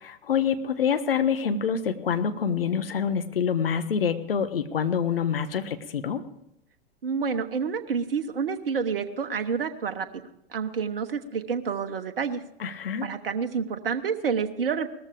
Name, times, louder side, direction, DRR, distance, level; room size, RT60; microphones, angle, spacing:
voice 1, 0.2-6.2 12.6-13.1, left 7 dB, 75° left, 9 dB, 1.4 m, -26 dB
voice 2, 7.0-10.1 10.5-12.4 13.0-14.9, right 6 dB, 70° right, 7 dB, 1.2 m, -28 dB
18.5 x 14.0 x 5.0 m, 0.80 s
figure-of-eight pair, 100°, 29 cm